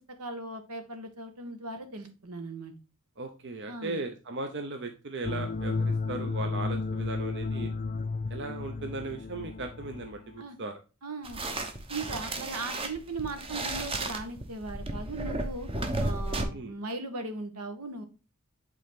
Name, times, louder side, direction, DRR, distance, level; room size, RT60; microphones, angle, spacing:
voice 1, 0.2-2.7 3.7-4.0 10.4-10.6 11.0-11.4 11.9-15.7 16.0-18.0, right 2 dB, 85° right, 7 dB, 1.4 m, -38 dB
voice 2, 3.2-7.7 8.3-10.8 12.1-12.2 16.5-16.7, right 3 dB, 55° right, 5 dB, 0.7 m, -37 dB
sound 1, 5.2-10.4, left 3 dB, 35° left, 0.4 m, -33 dB
sound 2, 11.2-16.4, right 2 dB, 25° right, 0.8 m, -33 dB
8.1 x 3.8 x 3.6 m, 0.32 s
head